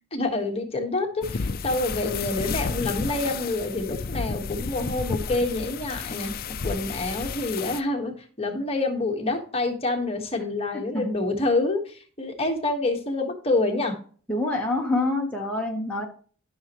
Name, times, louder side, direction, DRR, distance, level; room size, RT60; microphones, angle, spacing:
voice 1, 0.1-8.1 8.4-13.9, left 2 dB, 30° left, 3 dB, 1.5 m, -27 dB
sound 1, 1.2-7.8, left 5 dB, 45° left, 0.5 m, -32 dB
voice 2, 14.3-16.1, left 2 dB, 5° left, -2 dB, 1.1 m, -26 dB
13.5 x 6.2 x 3.1 m, 0.43 s
head